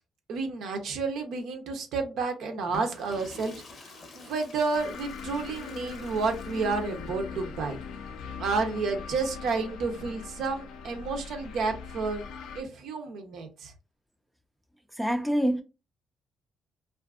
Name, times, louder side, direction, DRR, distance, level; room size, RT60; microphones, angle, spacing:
voice 1, 0.3-7.8 8.4-12.2 12.5-13.7, right 4 dB, 75° right, 0.7 m, -31 dB
Water / Toilet flush, 2.6-7.1, left 3 dB, 55° left, 0.7 m, -48 dB
sound 1, 4.7-12.6, left 6 dB, 90° left, 0.3 m, -41 dB
voice 2, 15.0-15.6, equal, ahead, 0.4 m, -25 dB
2.5 x 2.4 x 2.3 m
cardioid pair, 90°, 0 cm